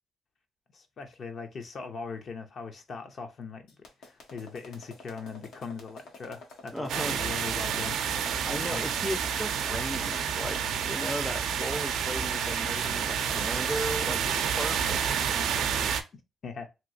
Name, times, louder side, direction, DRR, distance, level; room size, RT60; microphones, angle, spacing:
voice 1, 0.7-3.7 4.0-8.0 8.7-8.8 16.4-16.7, left 5 dB, 50° left, 0.7 m, -40 dB
sound 1, 3.7-14.9, left 3 dB, 80° left, 1.1 m, -48 dB
voice 2, 6.7-7.2 8.4-15.0, equal, ahead, 0.5 m, -36 dB
sound 2, 6.9-16.0, right 7 dB, 80° right, 0.5 m, -29 dB
2.9 x 2.7 x 2.6 m
cardioid pair, 90°, 0 cm